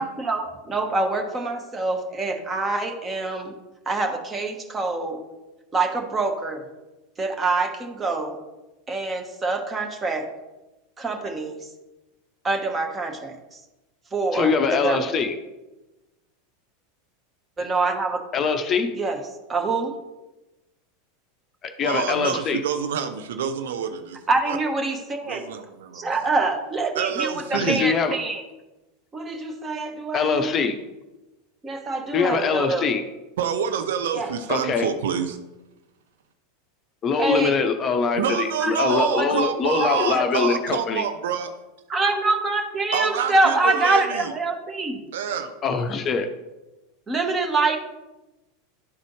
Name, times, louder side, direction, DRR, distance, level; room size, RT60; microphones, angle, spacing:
voice 1, 0.0-3.5 3.9-5.2 5.7-6.7 7.2-8.4 8.9-10.3 11.0-11.7 12.4-13.4 14.1-15.0 17.6-18.2 18.9-19.2 19.5-19.9 24.3-25.4 25.9-28.4 29.1-30.5 31.6-32.9 34.1-34.3 37.2-37.5 38.6-39.3 39.8-40.3 41.9-45.0 47.1-47.8, right 3 dB, 20° right, 3 dB, 1.1 m, -25 dB
voice 2, 14.3-15.4 18.3-18.9 21.6-22.6 27.5-28.2 30.1-30.8 32.1-33.0 34.5-34.9 37.0-41.0 45.6-46.3, left 5 dB, 30° left, 7 dB, 0.6 m, -23 dB
voice 3, 21.8-24.2 24.5-24.6 25.3-26.1 26.9-27.9 33.4-35.4 38.1-41.5 42.9-44.3 45.1-45.5, right 8 dB, 65° right, 7 dB, 0.5 m, -27 dB
11.0 x 4.1 x 3.1 m, 1.0 s
figure-of-eight pair, 85°, 0 cm